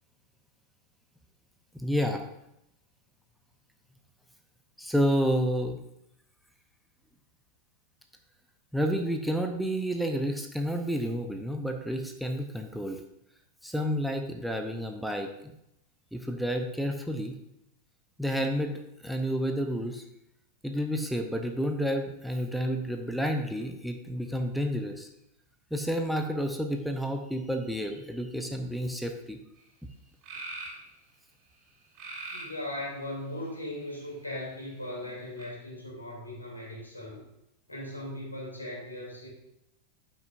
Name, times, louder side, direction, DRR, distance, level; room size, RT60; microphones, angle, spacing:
voice 1, 1.7-2.2 4.8-5.8 8.7-13.0 13.6-15.5 16.1-17.4 18.2-18.7 19.0-20.0 20.6-25.1 25.7-29.4, equal, ahead, 4 dB, 0.7 m, -30 dB
sound 1, 29.6-29.7 30.2-30.8 31.9-32.6 33.4-34.1 35.4-35.5, right 3 dB, 35° right, 2.7 m, -41 dB
voice 2, 32.3-37.2 37.7-39.3, left 1 dB, 85° left, -4 dB, 2.8 m, -38 dB
12.0 x 5.6 x 2.6 m, 0.82 s
figure-of-eight pair, 90°, 0 cm